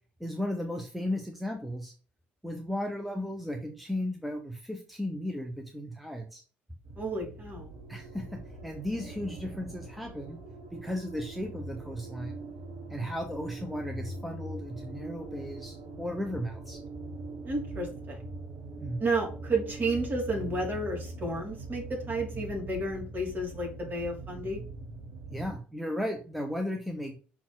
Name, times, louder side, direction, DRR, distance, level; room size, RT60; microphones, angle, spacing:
voice 1, 0.2-1.9 2.4-6.4 7.9-10.4 10.7-12.4 12.9-16.8 18.8-19.0 25.3-27.2, left 1 dB, ahead, 3 dB, 1.1 m, -35 dB
sound 1, 6.8-25.6, right 2 dB, 60° right, 1.5 m, -42 dB
voice 2, 7.0-7.7 17.4-18.2 19.0-24.6, right 2 dB, 35° right, 0 dB, 3.0 m, -32 dB
5.8 x 4.2 x 4.0 m, 0.39 s
figure-of-eight pair, 50°, 6 cm